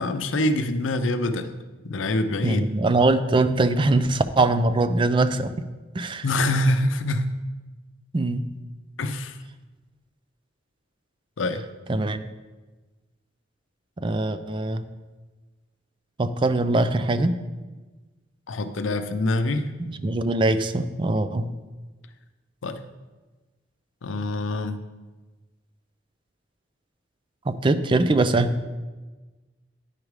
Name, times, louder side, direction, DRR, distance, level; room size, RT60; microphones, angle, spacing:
voice 1, 0.0-1.5 1.8-2.6 6.2-7.4 9.0-9.4 11.4-11.6 18.5-19.7 22.6-22.9 24.0-24.8, left 1 dB, 90° left, 10 dB, 0.6 m, -25 dB
voice 2, 2.4-5.5 6.0-6.2 8.1-8.5 11.9-12.2 14.0-14.8 16.2-17.3 19.8-21.5 27.5-28.5, right 2 dB, 25° right, 11 dB, 0.4 m, -22 dB
9.9 x 4.9 x 4.8 m, 1.2 s
head